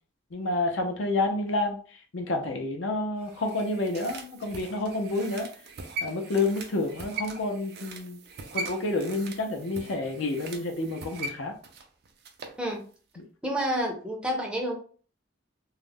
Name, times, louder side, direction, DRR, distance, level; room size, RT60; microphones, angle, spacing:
voice 1, 0.3-5.5 6.0-8.2 8.5-11.6 13.2-13.3, left 2 dB, 70° left, 0.5 m, -29 dB
sound 1, 3.2-12.6 12.9-13.0, right 3 dB, 55° right, 0.4 m, -40 dB
voice 2, 13.4-14.7, equal, 5° right, 0.5 m, -29 dB
2.3 x 2.0 x 3.3 m
head